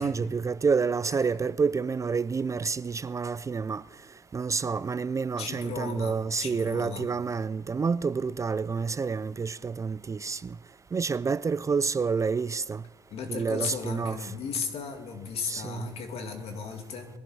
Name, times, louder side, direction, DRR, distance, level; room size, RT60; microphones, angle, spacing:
voice 1, 0.0-3.8 4.3-10.6 10.9-12.8 13.3-14.3 15.5-15.9, right 5 dB, 30° right, 0.4 m, -28 dB
voice 2, 5.4-7.1 13.1-17.1, left 5 dB, 65° left, 2.3 m, -36 dB
21.5 x 11.0 x 4.8 m
supercardioid pair, 75°, 11 cm